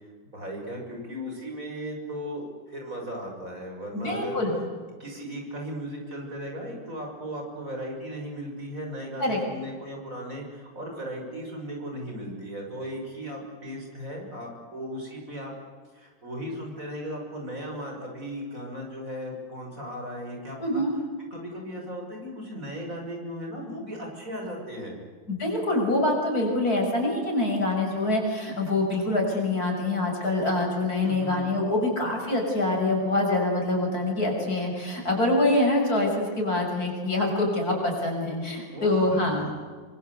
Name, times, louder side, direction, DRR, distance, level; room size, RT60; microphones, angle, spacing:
voice 1, 0.3-4.4 5.0-15.5 15.9-20.6 21.3-25.0 31.0-31.5 38.7-39.2, equal, 40° right, 1 dB, 6.8 m, -36 dB
voice 2, 3.9-4.5 9.2-9.4 20.6-20.9 25.3-39.6, left 2 dB, 45° left, 1 dB, 7.1 m, -25 dB
27.0 x 25.0 x 8.2 m, 1.5 s
omnidirectional pair, 2.1 m